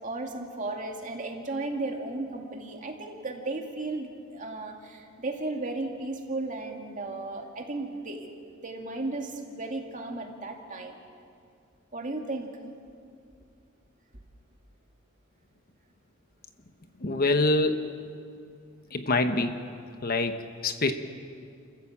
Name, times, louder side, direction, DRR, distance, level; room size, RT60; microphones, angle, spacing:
voice 1, 0.0-8.3 8.6-11.0 11.9-12.5, right 2 dB, 40° right, 2 dB, 2.4 m, -35 dB
voice 2, 17.0-17.9 18.9-19.6 20.0-20.3 20.6-20.9, left 2 dB, 45° left, 7 dB, 1.1 m, -25 dB
30.0 x 15.5 x 7.4 m, 2.4 s
head